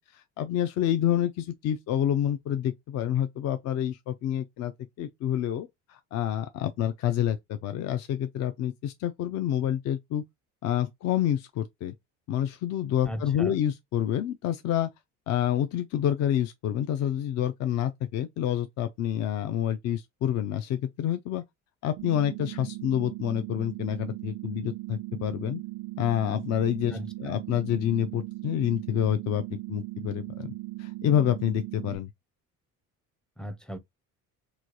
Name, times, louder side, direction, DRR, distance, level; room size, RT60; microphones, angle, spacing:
voice 1, 0.0-4.7 5.0-10.2 10.6-11.9 12.3-14.9 15.3-21.4 21.8-25.6 26.0-30.5 30.8-32.1, left 10 dB, 55° left, 0.5 m, -28 dB
voice 2, 13.1-13.6 26.9-27.4 33.4-33.8, equal, ahead, 0.5 m, -37 dB
sound 1, 22.0-32.0, right 20 dB, 80° right, 0.5 m, -38 dB
3.1 x 2.3 x 3.8 m
cardioid pair, 125°, 33 cm